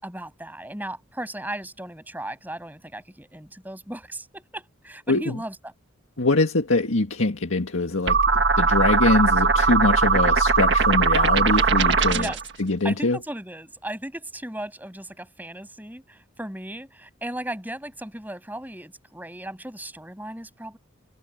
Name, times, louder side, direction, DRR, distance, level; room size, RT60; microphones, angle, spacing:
voice 1, 0.0-5.7 12.1-12.4 12.8-20.8, right 1 dB, 10° right, 7.0 m, -36 dB
voice 2, 6.2-12.3 12.6-13.2, left 2 dB, 80° left, 1.8 m, -23 dB
sound 1, 8.1-12.5, right 4 dB, 60° right, 1.7 m, -20 dB
head